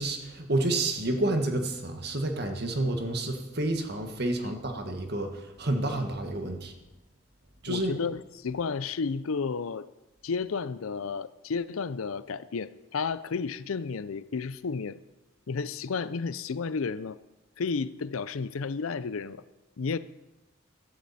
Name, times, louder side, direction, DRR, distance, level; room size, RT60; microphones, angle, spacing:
voice 1, 0.0-6.7 7.6-7.9, right 2 dB, 50° right, 5 dB, 1.6 m, -29 dB
voice 2, 7.7-9.9 10.2-15.0 15.5-17.2 17.6-19.4 19.8-20.0, left 5 dB, 85° left, 16 dB, 0.5 m, -32 dB
15.0 x 12.5 x 4.2 m, 1.0 s
head